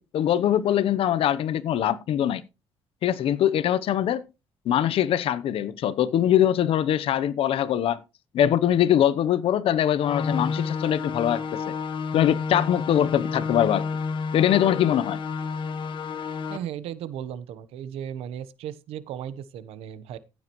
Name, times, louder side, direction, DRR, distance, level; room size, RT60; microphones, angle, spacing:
voice 1, 0.0-2.4 3.0-4.2 4.6-8.0 8.3-11.7 12.1-13.9 14.3-15.2, left 10 dB, 70° left, 0.9 m, -22 dB
sound 1, 10.0-16.6, left 5 dB, 55° left, 1.4 m, -30 dB
voice 2, 16.5-20.2, right 9 dB, 85° right, 1.0 m, -36 dB
15.5 x 7.5 x 3.1 m
cardioid pair, 90°, 10 cm